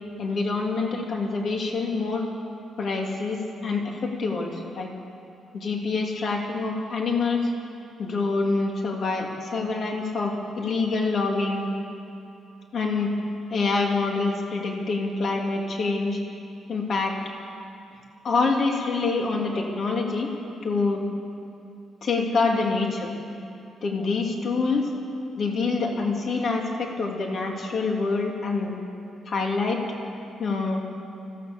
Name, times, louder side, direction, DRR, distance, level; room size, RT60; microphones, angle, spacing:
voice 1, 0.2-2.3 2.8-4.9 5.5-7.5 8.0-11.7 12.7-13.1 13.5-16.2 16.7-17.1 18.2-20.3 20.6-21.0 22.0-23.1 23.8-24.9 25.4-28.8 29.3-29.8 30.4-30.9, left 3 dB, 40° left, 1 dB, 2.8 m, -26 dB
25.0 x 16.0 x 7.0 m, 2.7 s
cardioid pair, 165°, 0 cm